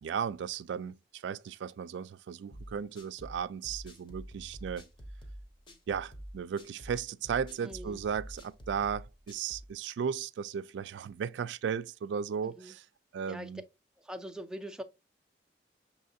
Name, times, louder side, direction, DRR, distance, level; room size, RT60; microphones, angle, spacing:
voice 1, 0.0-4.9 5.9-12.9 13.1-13.6, right 7 dB, 80° right, 0.3 m, -35 dB
sound 1, 2.5-9.7, equal, 25° left, 0.8 m, -47 dB
voice 2, 7.6-8.0 12.4-12.7 13.3-13.5 14.0-14.8, equal, 5° right, 0.4 m, -42 dB
6.4 x 2.9 x 2.6 m
head